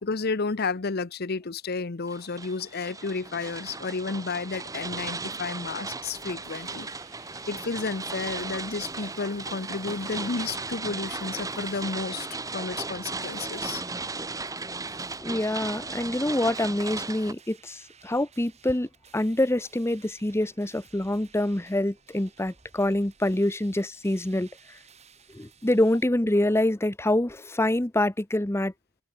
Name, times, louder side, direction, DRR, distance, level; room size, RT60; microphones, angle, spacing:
voice 1, 0.0-6.9 7.5-12.3 12.5-13.8, left 4 dB, 50° left, 0.8 m, -32 dB
sound 1, 2.1-17.3, right 3 dB, 15° right, 1.4 m, -36 dB
sound 2, 6.0-26.0, right 6 dB, 35° right, 4.2 m, -57 dB
voice 2, 15.2-24.5 25.3-28.7, left 1 dB, 15° left, 0.9 m, -26 dB
head